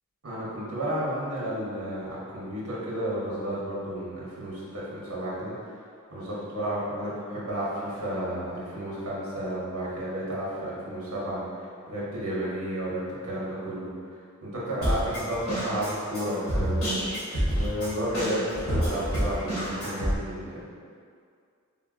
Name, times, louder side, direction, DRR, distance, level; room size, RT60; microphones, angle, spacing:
voice 1, 0.2-5.7 6.1-13.9 14.4-16.9 17.5-20.7, equal, 70° right, -7 dB, 0.8 m, -32 dB
Drum kit, 14.8-20.2, equal, 70° left, 1.2 m, -28 dB
3.8 x 2.2 x 2.4 m, 2.2 s
head